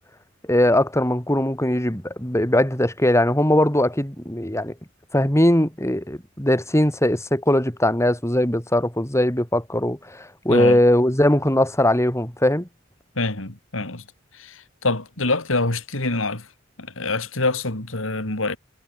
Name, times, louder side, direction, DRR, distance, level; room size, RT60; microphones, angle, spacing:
voice 1, 0.5-4.7 5.1-12.7, left 1 dB, 15° left, 6.3 m, -20 dB
voice 2, 10.5-10.8 13.2-14.0 14.3-16.5 16.8-18.6, left 2 dB, 85° left, 3.8 m, -25 dB
head